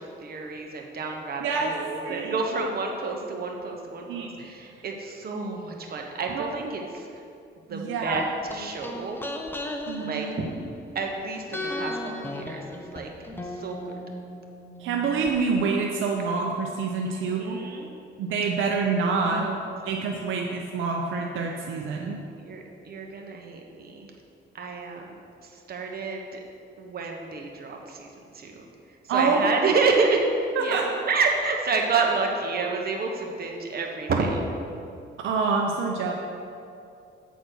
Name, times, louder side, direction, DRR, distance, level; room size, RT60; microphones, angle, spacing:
voice 1, 0.0-7.1 7.7-8.2 8.5-9.2 10.0-10.5 10.9-12.6 12.9-13.1 13.4-14.0 17.1-17.9 19.2-19.6 20.2-20.4 22.4-24.1 24.6-26.4 26.8-28.7 29.1-30.2 30.6-34.4, right 4 dB, 50° right, 1 dB, 1.2 m, -29 dB
voice 2, 1.4-1.7 2.0-2.6 4.1-4.5 4.7-4.8 6.3-6.7 7.7-8.3 9.9-10.3 14.8-17.6 18.2-19.4 19.9-22.2 29.1-29.7 30.6-30.9 35.2-36.1, right 4 dB, 80° right, 1 dB, 0.7 m, -27 dB
sound 1, 8.2-11.1 11.5-15.3 15.6-15.7, left 1 dB, 10° left, 0.7 m, -36 dB
8.1 x 4.2 x 6.1 m, 2.5 s
cardioid pair, 90°, 20 cm